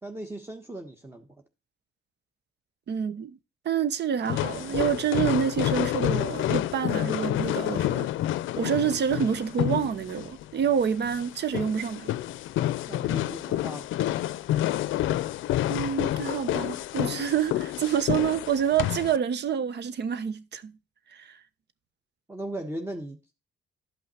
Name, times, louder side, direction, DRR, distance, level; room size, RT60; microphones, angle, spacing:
voice 1, 0.0-1.3 12.9-13.9 22.3-23.3, right 1 dB, 10° right, 1.3 m, -37 dB
voice 2, 2.9-3.4 3.6-8.1 8.6-12.2 15.7-20.8 21.1-21.4, right 8 dB, 60° right, 1.1 m, -27 dB
sound 1, 4.3-19.2, left 13 dB, 80° left, 0.5 m, -29 dB
12.0 x 5.7 x 4.3 m
cardioid pair, 90°, 20 cm